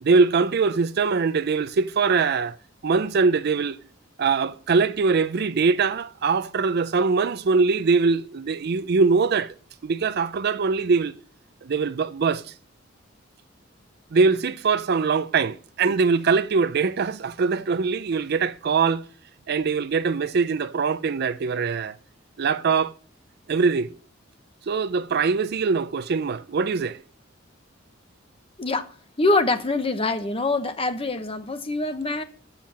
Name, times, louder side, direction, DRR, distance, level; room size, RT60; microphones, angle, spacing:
voice 1, 0.0-2.6 2.8-3.8 4.2-9.5 9.8-11.1 11.6-12.4 14.1-19.0 19.5-22.0 22.4-22.9 23.5-23.9 24.7-27.0, right 4 dB, 55° right, 0.5 m, -22 dB
voice 2, 29.2-32.2, left 2 dB, 30° left, 0.9 m, -24 dB
7.5 x 7.1 x 6.2 m
head